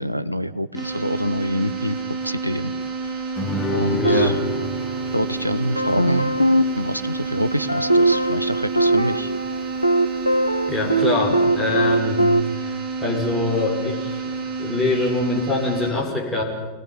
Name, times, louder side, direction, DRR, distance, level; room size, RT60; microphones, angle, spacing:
voice 1, 0.0-2.0 2.2-2.7 3.7-4.4 5.1-6.4 6.8-9.3, equal, 90° right, 13 dB, 0.9 m, -26 dB
sound 1, 0.7-15.9, right 4 dB, 20° right, 7.1 m, -29 dB
Guitar, 3.4-8.4, left 1 dB, 20° left, 3.1 m, -31 dB
voice 2, 3.9-4.4 10.7-12.2 12.6-12.7 13.0-14.2 14.6-16.4, left 2 dB, 5° left, -2 dB, 6.3 m, -24 dB
sound 2, 4.0-5.3 5.8-12.4, right 1 dB, 90° left, 0.9 m, -21 dB
26.0 x 19.0 x 8.9 m, 1.2 s
figure-of-eight pair, 90°, 0 cm